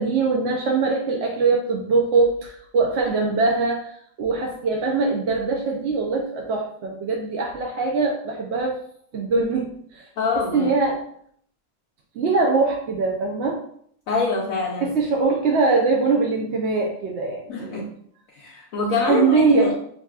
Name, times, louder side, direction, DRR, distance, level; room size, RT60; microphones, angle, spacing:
voice 1, 0.0-8.8 9.1-10.1 10.3-11.0 12.1-13.6 14.8-17.9 19.0-19.7, right 4 dB, 65° right, -1 dB, 0.7 m, -22 dB
voice 2, 10.2-10.7 14.1-14.9 17.5-17.9 18.4-19.7, left 4 dB, 65° left, -2 dB, 1.0 m, -25 dB
5.8 x 2.8 x 2.4 m, 0.64 s
omnidirectional pair, 1.6 m